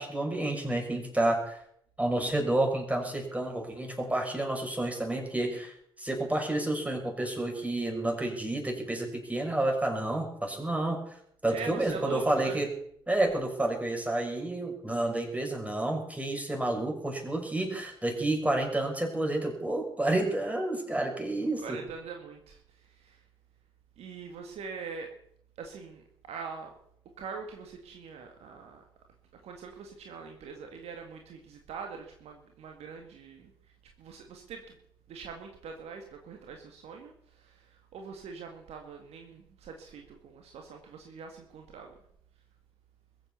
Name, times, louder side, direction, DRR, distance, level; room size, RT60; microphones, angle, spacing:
voice 1, 0.0-1.6 2.0-11.0 11.4-12.7 13.1-21.8, right 1 dB, 10° right, 1 dB, 6.5 m, -30 dB
voice 2, 11.5-12.6 21.6-23.2 24.0-25.1 25.6-26.7 27.2-28.8 29.4-33.5 34.0-34.8 35.1-41.9, right 5 dB, 65° right, 3 dB, 2.0 m, -43 dB
22.0 x 8.1 x 7.0 m, 0.69 s
hypercardioid pair, 45°, 12 cm